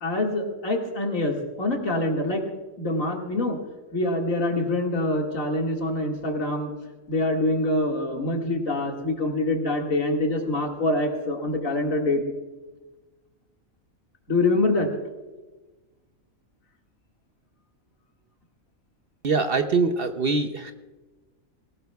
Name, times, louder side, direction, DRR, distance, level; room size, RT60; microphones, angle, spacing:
voice 1, 0.0-2.4 2.8-3.6 3.9-6.7 7.1-12.2 14.3-14.9, left 2 dB, 70° left, 1 dB, 2.5 m, -25 dB
voice 2, 19.2-20.7, right 4 dB, 50° right, 7 dB, 0.8 m, -23 dB
18.5 x 18.5 x 2.3 m, 1.2 s
omnidirectional pair, 1.4 m